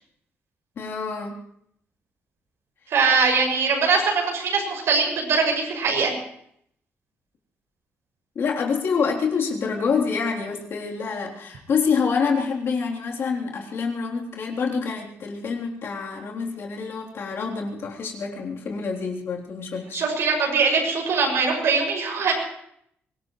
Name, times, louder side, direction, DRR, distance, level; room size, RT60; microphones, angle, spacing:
voice 1, 0.8-1.4 8.3-20.0, left 5 dB, 55° left, -1 dB, 3.5 m, -27 dB
voice 2, 2.9-6.1 19.9-22.3, right 4 dB, 75° right, 1 dB, 6.6 m, -22 dB
24.0 x 19.0 x 3.2 m, 0.68 s
cardioid pair, 140°, 5 cm